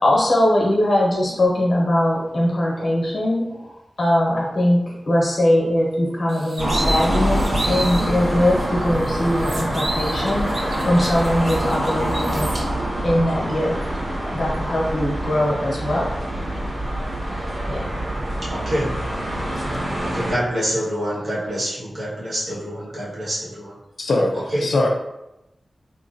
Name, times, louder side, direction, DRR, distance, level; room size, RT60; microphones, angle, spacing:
voice 1, 0.0-3.7 4.0-12.6 13.0-13.8 14.3-16.1 17.7-17.8, left 1 dB, 55° left, -3 dB, 1.1 m, -21 dB
sound 1, 6.3-8.1 8.6-8.7 9.0-12.6, right 1 dB, 70° right, 0.7 m, -31 dB
sound 2, 6.6-20.3, right 1 dB, 45° right, 1.3 m, -25 dB
voice 2, 18.5-18.9 20.0-23.7 24.5-24.6, equal, 85° right, -7 dB, 1.4 m, -26 dB
voice 3, 24.0-24.9, left 2 dB, 75° left, 1 dB, 0.6 m, -21 dB
3.7 x 3.0 x 2.6 m, 0.91 s
wide cardioid pair, 110°, 0 cm